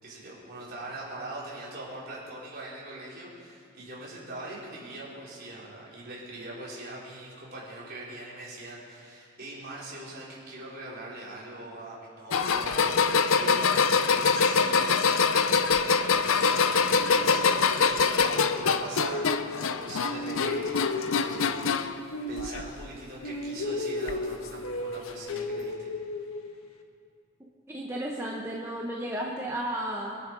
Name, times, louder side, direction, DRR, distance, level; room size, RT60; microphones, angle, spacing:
voice 1, 0.0-21.9 22.3-25.9, right 1 dB, 45° right, -6 dB, 4.5 m, -42 dB
sound 1, 12.3-22.0 22.4-23.0 24.1-24.2 25.3-25.4, left 5 dB, 70° left, 0.6 m, -24 dB
sound 2, 17.0-19.7 20.0-23.0 23.2-26.8, left 2 dB, 85° left, 1.5 m, -35 dB
voice 2, 27.7-30.2, right 1 dB, 10° right, -3 dB, 1.1 m, -33 dB
23.0 x 10.5 x 4.8 m, 2.4 s
head